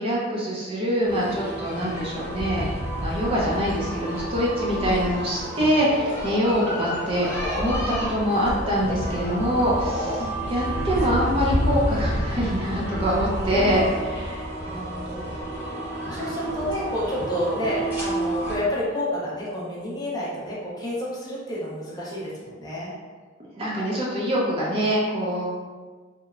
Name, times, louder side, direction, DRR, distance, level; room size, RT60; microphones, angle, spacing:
voice 1, 0.0-2.7 3.0-14.5 23.6-25.5, equal, 30° right, -5 dB, 0.4 m, -24 dB
sound 1, 1.0-18.6, equal, 10° right, 0.8 m, -30 dB
sound 2, 5.7-7.8 8.1-10.2, equal, 80° left, 0.6 m, -35 dB
voice 2, 13.5-13.8 14.6-15.3 16.1-22.9, left 1 dB, 20° left, -6 dB, 0.5 m, -30 dB
2.9 x 2.1 x 2.4 m, 1.4 s
head